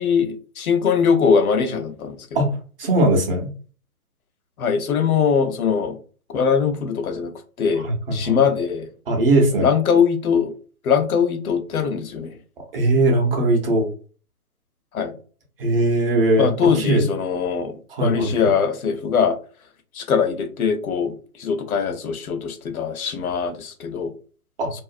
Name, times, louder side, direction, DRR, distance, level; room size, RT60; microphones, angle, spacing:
voice 1, 0.0-2.2 4.6-6.0 6.3-7.3 7.6-7.8 8.1-8.9 9.6-10.5 10.8-12.3 14.9-15.1 16.4-17.7 18.0-19.4 19.9-21.1 21.4-24.1, left 6 dB, 65° left, 0.7 m, -21 dB
voice 2, 2.3-3.5 7.8-8.4 9.1-9.7 12.7-13.9 15.6-17.1 17.9-18.3 24.6-24.7, right 1 dB, 40° right, 0.7 m, -20 dB
2.5 x 2.0 x 2.4 m
figure-of-eight pair, 140°, 46 cm